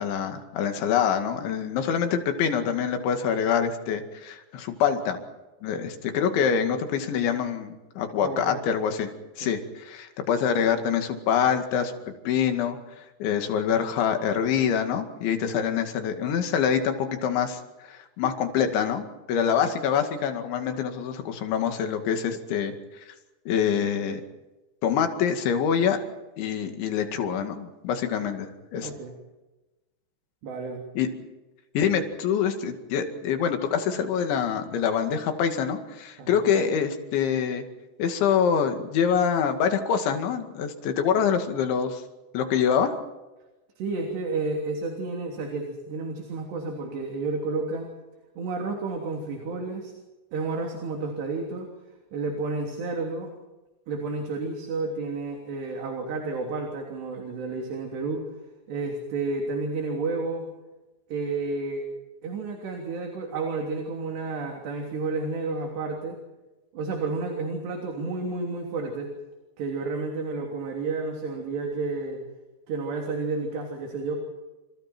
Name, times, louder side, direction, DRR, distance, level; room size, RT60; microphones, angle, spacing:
voice 1, 0.0-5.2 5.6-9.1 9.4-22.7 23.5-24.2 24.8-26.0 26.4-28.9 31.0-31.1 31.7-37.7 38.0-42.0 42.3-42.9, left 7 dB, 90° left, 6 dB, 4.6 m, -25 dB
voice 2, 8.2-8.6 9.4-9.5 28.8-29.2 30.4-30.8 36.2-36.4 43.8-47.9 48.4-49.9 50.3-51.7 52.1-53.3 53.9-58.3 58.7-60.5 61.1-61.9 62.2-66.2 66.7-69.1 69.6-72.2 72.7-74.2, right 3 dB, 70° right, 2 dB, 5.3 m, -31 dB
29.0 x 27.5 x 4.5 m, 1.1 s
omnidirectional pair, 5.1 m